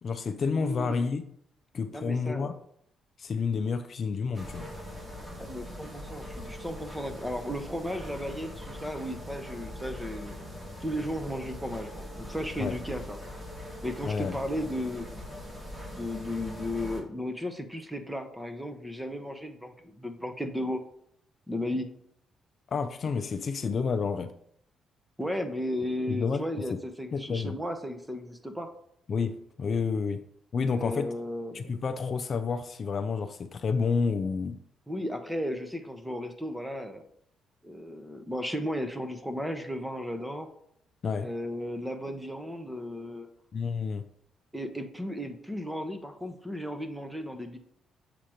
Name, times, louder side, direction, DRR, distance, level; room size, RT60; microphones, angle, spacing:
voice 1, 0.0-1.2 1.7-2.5 3.2-4.7 12.6-12.8 14.0-14.4 22.7-24.3 26.1-26.4 26.7-26.8 27.1-27.6 29.1-30.2 30.5-31.1 31.5-34.6 41.0-41.3 43.5-44.0, left 5 dB, 50° left, 9 dB, 0.4 m, -29 dB
voice 2, 0.5-1.0 1.9-2.5 5.4-10.3 10.8-13.2 13.8-15.1 15.9-20.8 21.5-21.9 25.2-28.7 30.7-31.7 34.9-37.0 37.6-40.5 41.2-43.3 44.5-47.6, equal, 5° right, 7 dB, 0.8 m, -35 dB
sound 1, 4.3-17.0, equal, 20° right, 1.7 m, -41 dB
7.4 x 2.9 x 5.0 m, 0.68 s
cardioid pair, 90°, 0 cm